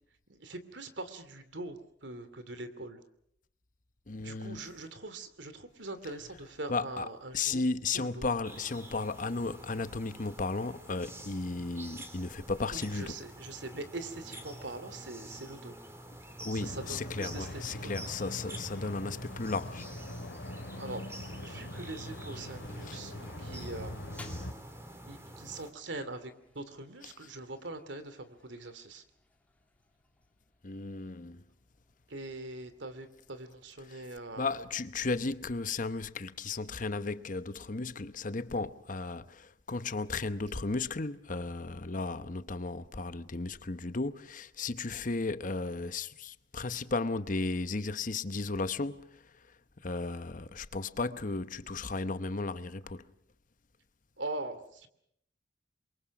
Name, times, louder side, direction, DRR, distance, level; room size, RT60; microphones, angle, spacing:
voice 1, 0.3-3.0 4.2-7.6 7.9-8.3 12.7-15.7 16.5-17.9 20.8-21.0 21.4-24.1 25.1-29.0 32.1-34.6 54.2-54.9, right 2 dB, 75° right, 2.6 m, -42 dB
voice 2, 4.1-4.7 6.7-7.1 7.3-13.1 16.4-19.9 22.9-23.0 30.6-31.4 34.4-49.2 49.8-53.0, left 3 dB, 45° left, 0.9 m, -35 dB
sound 1, 8.4-25.7, right 1 dB, 15° right, 3.0 m, -48 dB
sound 2, 16.6-24.5, left 1 dB, 70° left, 2.5 m, -42 dB
Toilet flush, 16.6-33.6, left 2 dB, 10° left, 2.3 m, -60 dB
28.0 x 23.0 x 6.0 m
head